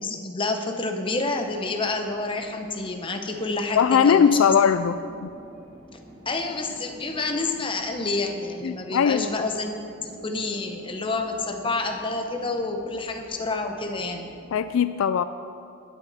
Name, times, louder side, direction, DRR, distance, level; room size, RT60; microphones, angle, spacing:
voice 1, 0.0-4.5 6.3-9.7 10.0-14.3, left 3 dB, 25° left, 5 dB, 0.9 m, -28 dB
sound 1, 1.3-14.7, equal, 50° right, 2.1 m, -48 dB
voice 2, 3.7-5.0 8.6-9.3 14.5-15.2, left 7 dB, 65° left, 12 dB, 0.3 m, -19 dB
19.5 x 8.3 x 4.2 m, 2.4 s
head